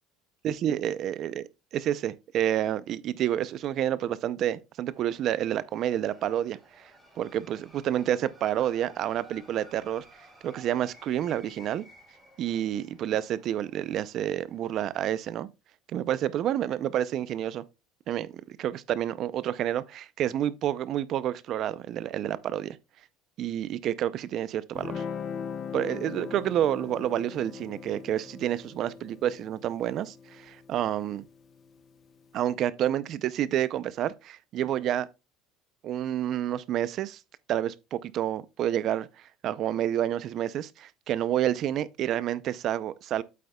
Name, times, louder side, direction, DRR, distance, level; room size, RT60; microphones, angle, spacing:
voice 1, 0.4-1.4 1.7-6.9 7.2-10.0 10.4-11.8 12.4-15.5 15.9-17.6 18.1-22.8 23.4-25.0 25.7-31.2 32.3-35.1 35.8-37.2 37.5-43.2, right 11 dB, 40° right, 0.4 m, -29 dB
sound 1, 4.9-14.9, equal, 5° right, 3.4 m, -55 dB
Guitar, 24.7-31.9, left 6 dB, 30° left, 0.7 m, -40 dB
8.4 x 7.9 x 2.2 m
cardioid pair, 155°, 0 cm